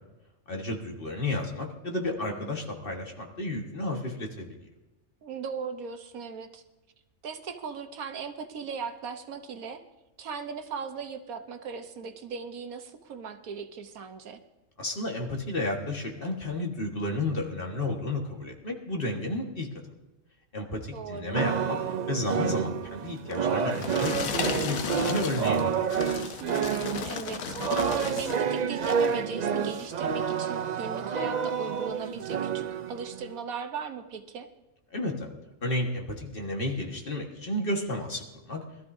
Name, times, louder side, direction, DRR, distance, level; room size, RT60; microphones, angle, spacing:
voice 1, 0.5-4.7 14.8-19.7 20.5-21.8 22.1-25.9 34.9-35.3 35.6-38.6, left 1 dB, 40° left, 1 dB, 1.7 m, -32 dB
voice 2, 2.2-2.6 5.2-6.6 7.2-9.8 10.2-14.4 20.9-21.4 26.4-27.6 27.8-34.5, right 6 dB, 90° right, 7 dB, 1.4 m, -38 dB
sound 1, 21.3-33.4, right 7 dB, 70° right, 0.4 m, -29 dB
sound 2, 23.3-28.4 28.8-29.2 29.8-29.9, left 7 dB, 85° left, 1.2 m, -35 dB
21.0 x 13.0 x 2.7 m, 1.0 s
omnidirectional pair, 1.4 m